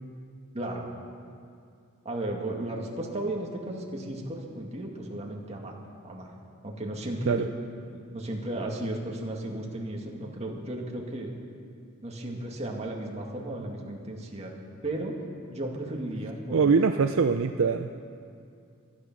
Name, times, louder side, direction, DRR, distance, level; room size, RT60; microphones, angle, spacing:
voice 1, 0.5-0.9 2.0-5.8 6.0-6.3 6.6-7.5 7.9-11.3 12.0-14.5 14.8-15.1 15.5-16.7, right 1 dB, 30° right, -1 dB, 2.1 m, -34 dB
voice 2, 16.5-17.9, right 5 dB, 65° right, 7 dB, 0.5 m, -23 dB
16.5 x 13.0 x 6.2 m, 2.4 s
head